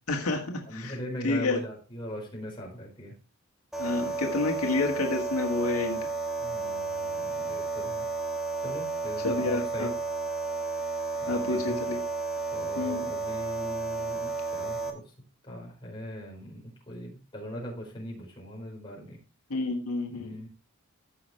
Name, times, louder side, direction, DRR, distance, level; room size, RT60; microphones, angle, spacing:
voice 1, 0.1-1.0 1.2-1.6 3.8-6.0 9.2-9.9 11.3-12.0 12.8-13.1 19.5-20.3, left 2 dB, 85° left, 1 dB, 1.8 m, -29 dB
voice 2, 0.7-3.1 6.4-8.0 8.6-9.9 11.2-11.8 12.5-15.0 15.4-19.2 20.1-20.5, equal, 25° left, -2 dB, 4.7 m, -40 dB
sound 1, 3.7-14.9, right 4 dB, ahead, 1.5 m, -32 dB
15.0 x 6.0 x 3.3 m, 0.35 s
head